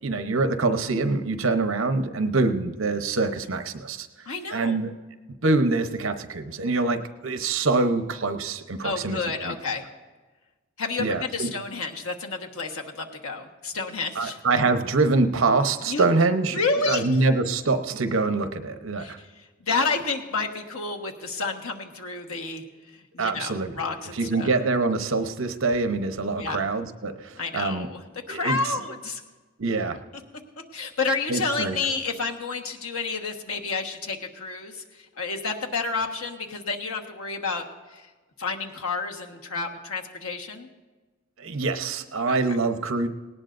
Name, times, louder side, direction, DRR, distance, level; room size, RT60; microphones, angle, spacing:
voice 1, 0.0-4.9 5.4-9.2 9.4-9.6 11.0-11.5 14.1-19.2 23.2-23.8 24.1-27.9 28.3-28.7 29.6-30.0 31.3-31.8 41.4-43.1, right 3 dB, 65° right, 8 dB, 0.9 m, -25 dB
voice 2, 4.3-4.8 8.8-9.8 10.8-14.4 15.9-16.1 16.5-17.0 19.0-19.1 19.6-24.5 26.4-26.7 27.4-28.0 28.3-29.2 30.7-37.6 37.9-38.1 38.4-40.7 42.3-42.4, left 4 dB, 85° left, 2 dB, 1.4 m, -30 dB
18.5 x 18.0 x 2.6 m, 1.3 s
head